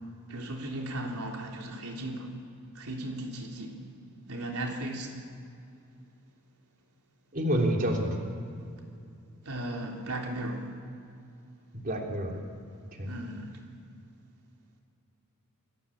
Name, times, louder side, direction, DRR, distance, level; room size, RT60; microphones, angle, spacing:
voice 1, 0.3-2.3 2.7-3.8 4.3-5.2 9.4-10.7 13.0-13.6, right 1 dB, 85° right, 1 dB, 3.5 m, -36 dB
voice 2, 7.3-8.2 11.7-12.4 13.0-13.1, equal, 40° right, 1 dB, 3.3 m, -28 dB
28.0 x 20.5 x 8.7 m, 2.5 s
head